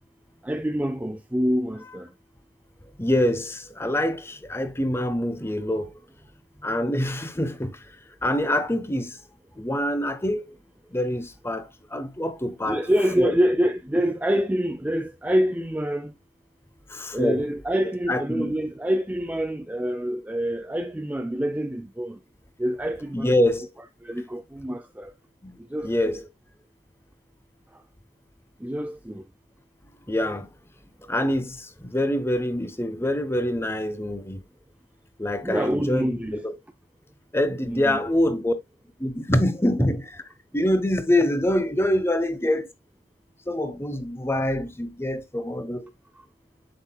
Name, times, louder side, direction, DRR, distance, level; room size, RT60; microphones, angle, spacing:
voice 1, 0.4-2.1 12.7-16.1 17.1-22.2 22.6-23.3 24.0-25.1 25.7-26.2 28.6-29.2 35.4-36.4 37.6-38.0, equal, 10° right, 0.4 m, -26 dB
voice 2, 3.0-6.0 6.6-7.8 8.2-9.2 9.6-10.6 10.9-12.8 13.2-13.3 16.9-17.5 18.1-18.5 23.1-23.7 25.4-25.6 25.8-26.2 30.1-30.5 31.1-34.4 35.2-36.6 37.3-38.5 39.0-40.2 40.5-42.7 43.5-45.9, left 1 dB, 15° left, 0.9 m, -25 dB
7.9 x 5.9 x 2.2 m
head